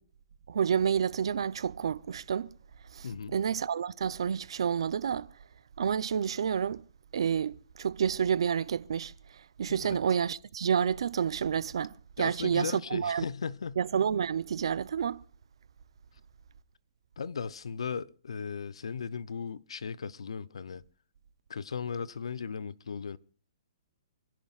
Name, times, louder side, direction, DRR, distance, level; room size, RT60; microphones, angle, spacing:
voice 1, 0.5-2.5 2.9-5.3 5.8-6.8 7.1-13.3 13.8-15.2, right 7 dB, 70° right, 0.6 m, -29 dB
voice 2, 3.0-3.4 9.7-10.0 12.2-13.8 17.2-20.8 21.5-23.2, left 6 dB, 85° left, 0.6 m, -37 dB
28.5 x 11.0 x 2.4 m
hypercardioid pair, 160°, 3 cm